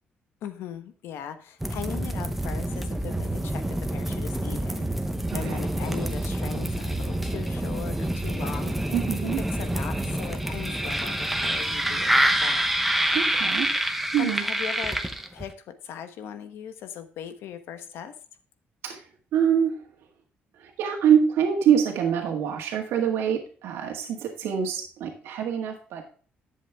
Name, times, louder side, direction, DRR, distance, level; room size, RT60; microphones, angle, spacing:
voice 1, 0.4-8.9 9.2-12.6 14.2-15.0 15.3-18.1, left 9 dB, 80° left, 10 dB, 1.1 m, -39 dB
sound 1, 1.6-15.5, right 1 dB, 5° right, 0.7 m, -27 dB
voice 2, 8.9-9.4 13.1-13.7 14.1-14.4 18.8-19.1 19.3-19.8 20.6-26.0, right 8 dB, 85° right, 2 dB, 1.7 m, -25 dB
11.0 x 7.5 x 3.4 m, 0.40 s
cardioid pair, 175°, 4 cm